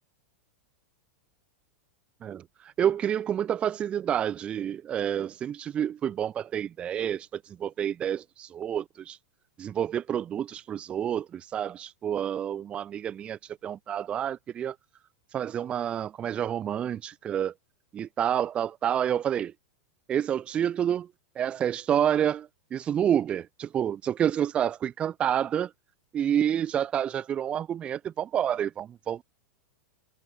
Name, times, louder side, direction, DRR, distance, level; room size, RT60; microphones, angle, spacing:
voice 1, 2.2-9.2 9.6-14.8 15.3-17.5 17.9-19.5 20.1-21.1 21.4-25.7 26.1-29.2, right 9 dB, 15° right, 0.8 m, -29 dB
supercardioid pair, 180°, 7 cm